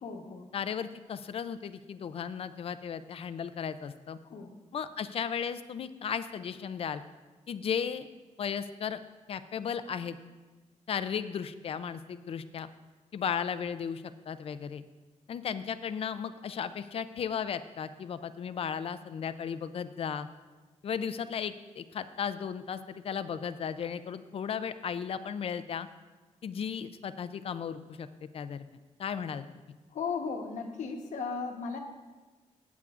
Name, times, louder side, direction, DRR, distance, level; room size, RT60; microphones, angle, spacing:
voice 1, 0.0-0.5 4.3-4.5 29.9-31.8, left 5 dB, 80° left, 4 dB, 1.1 m, -36 dB
voice 2, 0.5-4.2 4.7-7.0 7.5-8.1 8.4-9.0 9.3-10.2 10.9-12.7 13.1-14.8 15.3-20.3 20.8-25.9 26.4-28.7 29.0-29.4, left 7 dB, 50° left, 13 dB, 0.4 m, -35 dB
15.0 x 8.3 x 2.5 m, 1.2 s
wide cardioid pair, 170°, 13 cm